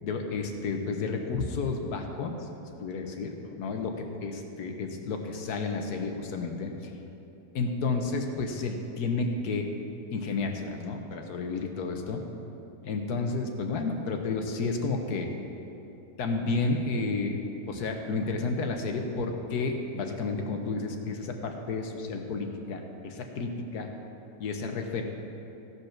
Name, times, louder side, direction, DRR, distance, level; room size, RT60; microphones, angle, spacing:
voice 1, 0.0-2.5 2.8-6.9 7.5-9.7 10.1-12.2 12.8-15.3 16.2-17.4 17.7-23.9 24.4-25.0, left 3 dB, 85° left, 4 dB, 1.6 m, -31 dB
16.5 x 5.5 x 5.9 m, 3.0 s
omnidirectional pair, 1.6 m